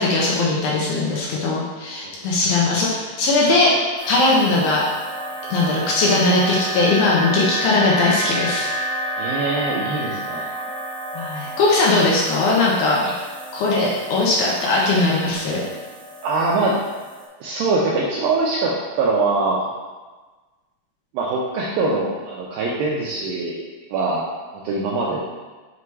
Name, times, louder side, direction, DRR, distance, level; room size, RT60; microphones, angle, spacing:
voice 1, 0.0-3.7 4.0-4.9 5.5-8.7 11.2-13.2 13.5-15.6, left 2 dB, 75° left, -4 dB, 2.4 m, -19 dB
sound 1, 4.0-17.3, right 1 dB, 45° right, 2.2 m, -30 dB
voice 2, 9.2-10.5 16.2-16.8 17.4-19.6 21.1-23.6 23.9-24.3 24.6-25.2, right 3 dB, 80° right, -4 dB, 2.1 m, -22 dB
6.9 x 2.9 x 4.6 m, 1.3 s
omnidirectional pair, 4.8 m